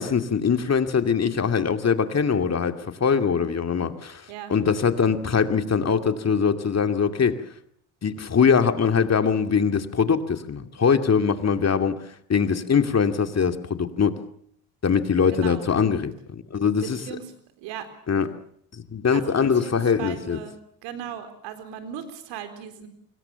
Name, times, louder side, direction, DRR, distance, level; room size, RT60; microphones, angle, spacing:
voice 1, 0.0-7.4 8.0-12.0 12.3-14.2 14.8-17.0 18.1-18.3 18.7-20.4, left 6 dB, 35° left, 8 dB, 2.5 m, -22 dB
voice 2, 15.3-15.7 16.8-17.3 17.6-17.9 19.1-20.5 20.8-22.9, right 9 dB, 80° right, 9 dB, 4.2 m, -37 dB
25.5 x 22.0 x 7.0 m, 0.67 s
supercardioid pair, 70°, 42 cm